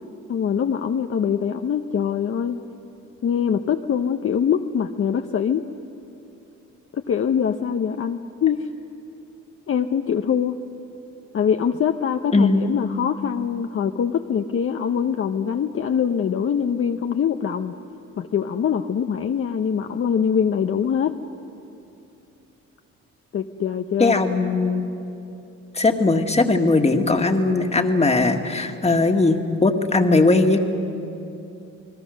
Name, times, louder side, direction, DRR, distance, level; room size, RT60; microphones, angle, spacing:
voice 1, 0.3-2.6 3.2-5.6 6.9-8.7 9.7-10.6 11.3-17.7 18.2-21.2 23.3-24.2, left 7 dB, 45° left, 5 dB, 0.8 m, -23 dB
voice 2, 12.3-12.6 24.0-24.8 25.7-30.6, left 3 dB, 20° left, 4 dB, 1.8 m, -19 dB
29.0 x 20.5 x 6.5 m, 2.8 s
cardioid pair, 90°, 30 cm